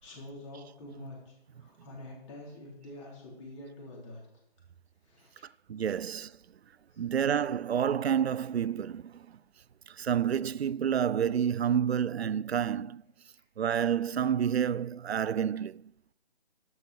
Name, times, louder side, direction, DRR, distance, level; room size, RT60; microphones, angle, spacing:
voice 1, 0.0-4.3 5.0-5.4 6.9-7.0 13.3-13.4, left 1 dB, 30° left, 3.8 m, -47 dB
voice 2, 5.7-6.3 7.0-9.4 9.9-13.0 13.6-15.9, right 8 dB, 80° right, 0.5 m, -29 dB
12.0 x 7.9 x 6.1 m
figure-of-eight pair, 150°, 31 cm